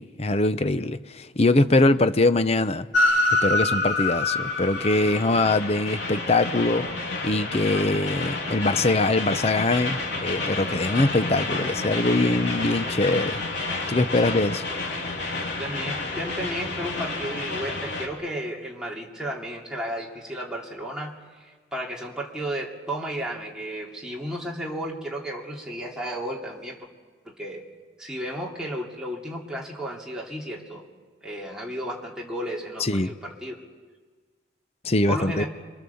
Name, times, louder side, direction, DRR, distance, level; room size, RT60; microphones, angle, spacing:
voice 1, 0.0-2.9 3.4-6.9 7.2-13.4 13.9-14.6 32.8-33.1 34.8-35.4, left 2 dB, 35° left, 0.7 m, -22 dB
Train, 2.9-18.1, left 2 dB, 70° left, 3.5 m, -28 dB
voice 2, 15.5-26.8 27.2-27.6 28.0-30.8 31.2-33.6 35.1-35.5, equal, 5° right, 2.9 m, -33 dB
28.0 x 24.0 x 7.1 m
head